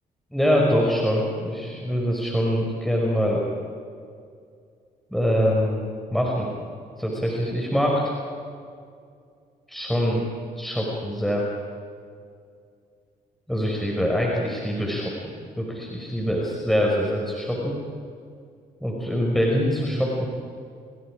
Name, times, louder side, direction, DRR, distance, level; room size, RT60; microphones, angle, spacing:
voice 1, 0.3-3.5 5.1-6.5 7.0-8.1 9.7-10.2 10.6-11.4 13.5-15.1 15.6-17.8 18.8-20.3, equal, ahead, -2 dB, 5.8 m, -24 dB
27.5 x 25.5 x 5.1 m, 2.3 s
hypercardioid pair, 45°, 21 cm